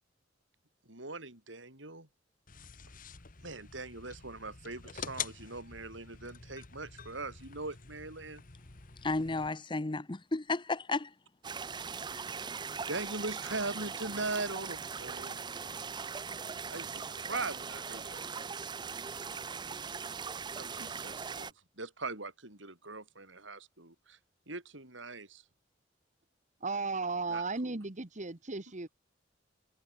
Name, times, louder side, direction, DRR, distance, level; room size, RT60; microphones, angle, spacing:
voice 1, 0.8-2.1 3.4-8.4 12.5-15.6 16.7-18.6 20.6-24.2 24.5-25.4 27.3-27.8, right 3 dB, 80° right, 6.8 m, -41 dB
sound 1, 2.5-9.5, left 7 dB, 45° left, 1.4 m, -46 dB
voice 2, 9.0-11.1, left 3 dB, 25° left, 0.8 m, -33 dB
sound 2, 11.4-21.5, right 5 dB, 25° right, 0.5 m, -40 dB
voice 3, 26.6-28.9, right 3 dB, 40° right, 1.4 m, -35 dB
head